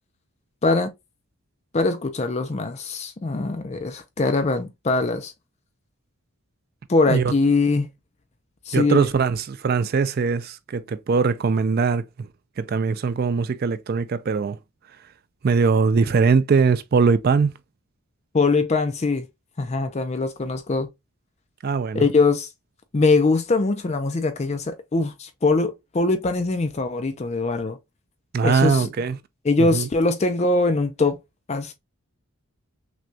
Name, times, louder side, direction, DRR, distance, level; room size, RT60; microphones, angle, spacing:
voice 1, 1.7-5.3 6.9-7.9 8.7-9.1 18.3-19.3 19.6-20.9 21.9-22.5 22.9-27.8 28.4-28.9 29.4-31.2 31.5-31.7, left 3 dB, 30° left, 0.4 m, -22 dB
voice 2, 8.7-12.0 12.6-14.6 15.4-17.5 21.6-22.0 28.3-29.2 29.6-29.9, right 5 dB, 45° right, 0.3 m, -21 dB
6.0 x 2.2 x 2.6 m
head